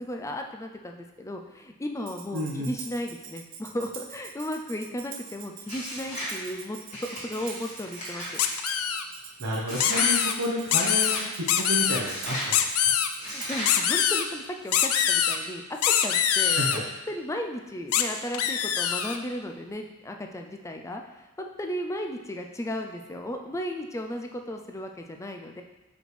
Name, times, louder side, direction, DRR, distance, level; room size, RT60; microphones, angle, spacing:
voice 1, 0.0-6.8 7.1-8.4 13.2-25.6, left 1 dB, 15° left, 3 dB, 0.4 m, -35 dB
Tambourine, 2.1-13.8, right 7 dB, 60° right, 0.5 m, -44 dB
voice 2, 2.3-2.7 9.4-12.9 16.5-16.8, equal, 85° right, -5 dB, 0.9 m, -31 dB
sound 1, 5.7-6.4 6.9-8.5 9.7-10.1 10.7-11.3 12.0-12.5 13.2-13.8, equal, 30° left, 2.2 m, -35 dB
sound 2, 8.4-9.0 9.8-10.3 10.7-11.2 11.5-12.0 12.5-13.1 13.7-14.2 14.7-15.4 15.8-16.8 17.9-18.0 18.3-19.2, left 9 dB, 85° left, 0.4 m, -23 dB
6.2 x 5.1 x 3.3 m, 1.0 s
head